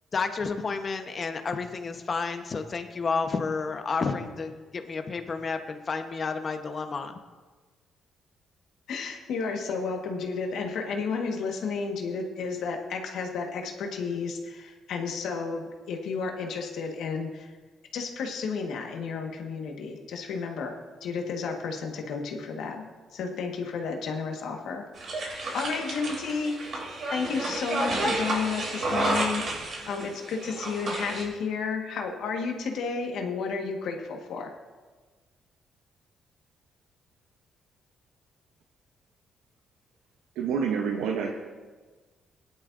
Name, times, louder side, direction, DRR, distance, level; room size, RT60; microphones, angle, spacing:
voice 1, 0.1-7.2, left 4 dB, 40° left, 7 dB, 1.1 m, -31 dB
voice 2, 8.9-17.5 17.9-20.7 21.0-22.9 23.1-24.8 25.2-26.6 27.1-34.5, left 5 dB, 75° left, 2 dB, 1.5 m, -32 dB
sound 1, 25.0-31.2, right 2 dB, 55° right, 2.8 m, -31 dB
voice 3, 40.4-41.3, right 6 dB, 90° right, 2 dB, 0.9 m, -27 dB
17.0 x 11.0 x 2.6 m, 1.4 s
cardioid pair, 90°, 0 cm